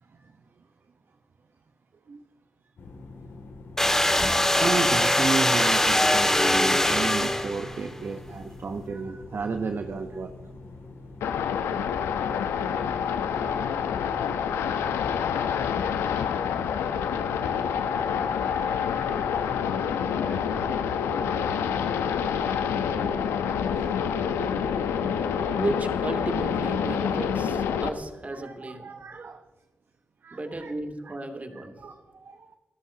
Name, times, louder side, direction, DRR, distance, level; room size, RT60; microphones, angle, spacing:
sound 1, 2.8-19.5, left 3 dB, 65° left, 2.5 m, -45 dB
sound 2, 3.8-7.8, left 1 dB, 10° left, 2.0 m, -22 dB
voice 1, 4.5-10.3 15.2-15.3 20.2-20.7 21.2-21.8 24.1-24.6 28.3-29.4 30.2-30.7 31.1-31.2 31.8-32.6, right 4 dB, 55° right, 6 dB, 1.0 m, -33 dB
sound 3, 11.2-27.9, left 7 dB, 85° left, 0.9 m, -27 dB
voice 2, 25.6-28.9 30.3-31.8, right 2 dB, 35° right, 4 dB, 2.9 m, -34 dB
27.5 x 13.5 x 2.9 m, 1.2 s
supercardioid pair, 40°, 4 cm